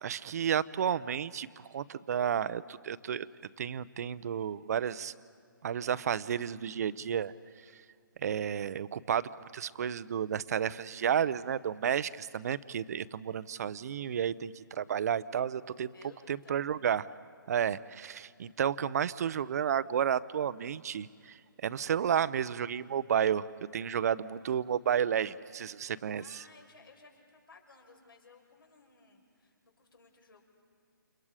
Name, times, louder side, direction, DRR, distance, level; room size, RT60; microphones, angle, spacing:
voice 1, 0.0-3.3 3.6-5.1 5.6-7.3 8.2-15.9 16.3-17.1 17.5-21.4 21.6-23.4 23.7-26.4, right 8 dB, 45° right, 16 dB, 0.7 m, -31 dB
voice 2, 15.9-16.6 26.2-30.4, left 3 dB, 75° left, 2 dB, 5.6 m, -58 dB
30.0 x 28.5 x 5.0 m, 2.3 s
figure-of-eight pair, 150°, 12 cm